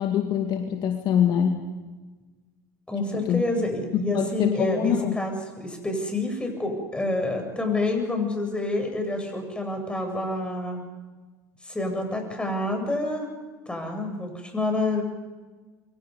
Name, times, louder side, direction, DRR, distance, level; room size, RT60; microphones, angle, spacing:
voice 1, 0.0-1.6 3.0-3.4 3.9-5.2, left 9 dB, 50° left, 4 dB, 2.3 m, -24 dB
voice 2, 2.9-10.8 11.6-13.3 13.7-15.0, left 2 dB, 10° left, 3 dB, 7.9 m, -28 dB
28.5 x 24.0 x 5.5 m, 1.3 s
hypercardioid pair, 70°, 10 cm